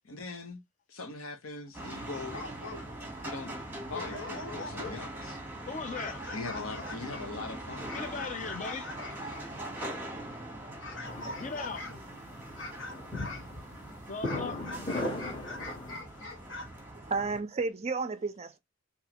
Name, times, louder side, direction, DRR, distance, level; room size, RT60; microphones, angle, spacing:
voice 1, 0.0-0.6 0.9-2.4 3.2-3.5 3.9-5.4 6.3-7.9 9.3-9.6, left 3 dB, 85° left, 1.0 m, -41 dB
sound 1, 1.7-17.4, right 1 dB, 10° right, 1.3 m, -42 dB
sound 2, 2.2-3.1 3.6-3.7 3.9-5.2 5.7-10.0 10.8-12.1 12.6-13.5 14.2-16.7, left 2 dB, 65° left, 1.2 m, -43 dB
voice 2, 5.7-6.2 7.9-8.9 11.4-11.9 14.1-14.6, left 4 dB, 35° left, 0.6 m, -38 dB
sound 3, 11.0-16.0, left 1 dB, 20° left, 1.4 m, -38 dB
voice 3, 17.0-18.6, right 4 dB, 30° right, 0.4 m, -32 dB
3.9 x 2.9 x 2.9 m
head